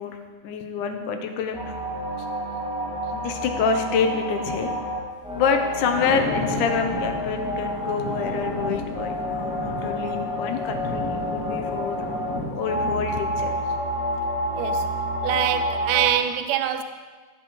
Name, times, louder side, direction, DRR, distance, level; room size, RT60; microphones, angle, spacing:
voice 1, 0.0-1.7 2.2-2.3 3.1-4.7 5.3-12.1 12.5-13.5, left 6 dB, 75° left, 2.1 m, -27 dB
sound 1, 1.5-16.1, equal, 5° right, 1.6 m, -29 dB
Thunder, 5.5-13.3, equal, 45° left, 0.9 m, -34 dB
voice 2, 14.6-14.9 15.2-16.8, right 11 dB, 80° right, 2.1 m, -24 dB
16.5 x 7.2 x 3.1 m
omnidirectional pair, 4.1 m